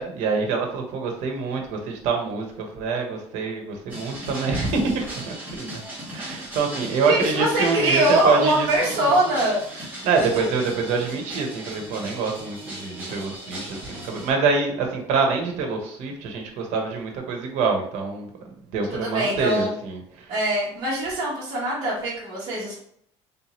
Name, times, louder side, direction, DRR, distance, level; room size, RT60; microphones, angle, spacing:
voice 1, 0.0-5.8 6.1-9.2 10.0-20.3, right 4 dB, 70° right, 2 dB, 0.9 m, -26 dB
sound 1, 3.9-14.3, right 1 dB, 15° right, 1.2 m, -37 dB
voice 2, 7.1-9.9 10.3-10.4 19.0-19.7 20.3-22.8, right 1 dB, 40° right, -8 dB, 1.0 m, -23 dB
3.5 x 2.7 x 2.9 m, 0.66 s
cardioid pair, 175°, 12 cm